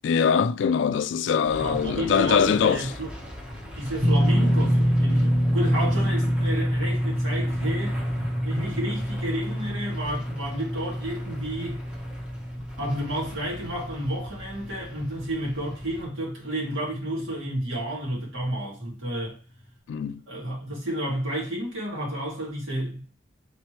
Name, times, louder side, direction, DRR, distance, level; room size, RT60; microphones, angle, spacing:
voice 1, 0.0-2.9 19.9-20.2, left 6 dB, 70° left, 0.3 m, -22 dB
sound 1, 1.4-16.1, equal, 5° right, 0.9 m, -40 dB
voice 2, 1.5-3.1 3.8-8.0 8.4-11.8 12.8-19.4 20.3-23.0, right 1 dB, 90° right, 2.1 m, -31 dB
sound 2, 4.0-16.2 16.5-16.7 18.4-18.5, equal, 70° right, 1.3 m, -26 dB
4.0 x 3.1 x 3.1 m
head